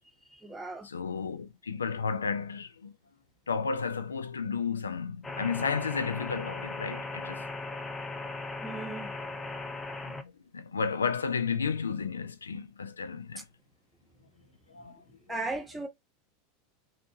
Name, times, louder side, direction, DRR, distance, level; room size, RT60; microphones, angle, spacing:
voice 1, 0.3-0.9 8.6-9.1 15.3-15.9, right 2 dB, 10° right, 0.8 m, -36 dB
voice 2, 0.8-2.9 3.5-7.4 10.0-13.4 14.7-15.0, left 5 dB, 85° left, 0.3 m, -33 dB
sound 1, 5.2-10.2, left 3 dB, 15° left, 0.5 m, -38 dB
2.5 x 2.4 x 2.6 m
hypercardioid pair, 90°, 0 cm